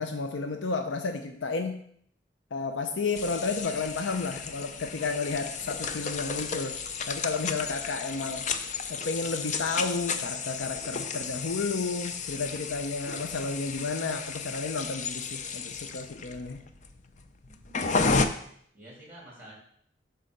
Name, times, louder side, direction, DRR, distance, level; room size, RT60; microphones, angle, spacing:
voice 1, 0.0-1.8 2.5-6.8 7.1-8.5 8.9-16.6, left 4 dB, 85° left, 6 dB, 0.6 m, -32 dB
sound 1, 3.1-18.3, left 4 dB, 40° left, 0.6 m, -33 dB
voice 2, 17.5-18.0 18.7-19.5, right 1 dB, 10° right, -3 dB, 3.4 m, -50 dB
8.2 x 4.0 x 6.6 m, 0.65 s
head